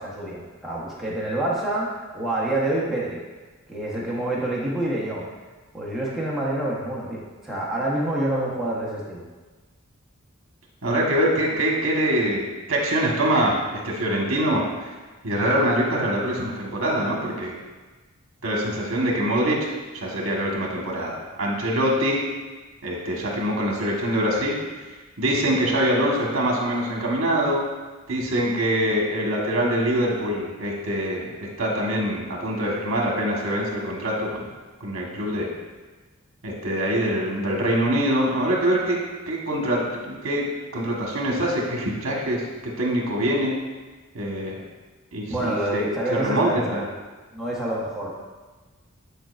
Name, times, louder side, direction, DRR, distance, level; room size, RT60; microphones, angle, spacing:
voice 1, 0.0-3.2 3.7-5.3 5.7-9.3 45.3-46.8 47.3-48.1, right 1 dB, ahead, -7 dB, 1.1 m, -27 dB
voice 2, 10.8-13.6 13.8-14.9 15.2-17.5 18.4-19.6 20.0-22.2 22.8-24.6 25.2-27.6 28.1-34.4 34.8-35.5 36.4-39.0 39.3-42.4 42.8-43.5 44.1-44.6 45.1-45.9 46.2-46.8, right 1 dB, 75° right, -2 dB, 1.4 m, -24 dB
8.9 x 4.6 x 2.5 m, 1.3 s
head